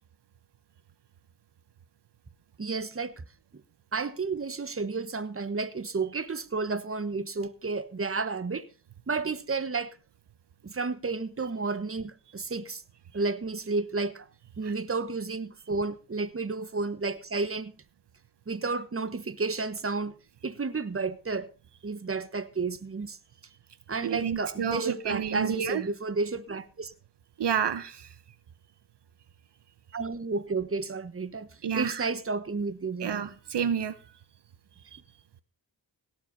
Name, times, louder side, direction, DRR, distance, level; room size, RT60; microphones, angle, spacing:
voice 1, 2.6-3.2 3.9-8.7 9.1-10.0 10.6-12.8 13.1-14.3 14.6-17.7 18.5-20.1 20.4-21.5 21.8-23.2 23.9-26.9 29.9-31.5 31.7-33.3, right 4 dB, 30° right, 1.4 m, -31 dB
voice 2, 24.0-25.8 27.4-28.1 31.6-32.1 33.0-34.0 34.9-35.0, right 8 dB, 70° right, 1.0 m, -30 dB
17.5 x 7.8 x 5.5 m
cardioid pair, 65°, 43 cm